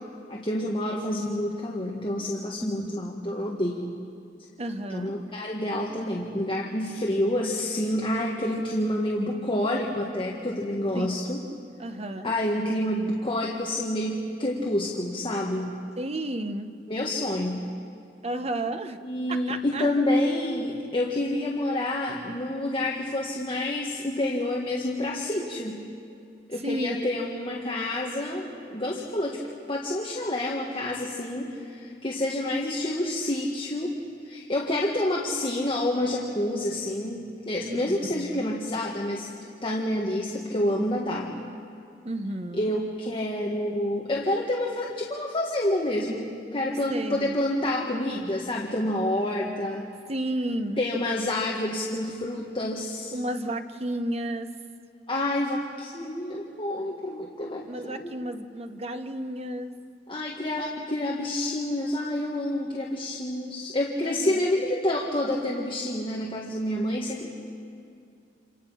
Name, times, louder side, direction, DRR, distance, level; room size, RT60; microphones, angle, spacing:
voice 1, 0.3-3.9 4.9-11.4 12.2-15.8 16.9-17.7 19.0-25.8 26.5-29.4 29.7-34.0 34.2-39.3 39.6-41.3 42.6-49.9 50.8-53.1 55.1-58.1 60.1-67.3, left 1 dB, 30° left, -2 dB, 1.7 m, -28 dB
voice 2, 2.6-3.0 4.6-5.1 10.9-11.1 11.5-12.3 16.0-16.7 18.2-19.0 19.3-20.0 26.6-27.0 37.6-38.5 42.0-42.7 46.9-47.4 50.1-50.8 53.1-54.5 57.7-59.7 64.0-64.4, right 1 dB, 35° right, 8 dB, 1.1 m, -32 dB
28.0 x 27.5 x 5.8 m, 2.5 s
head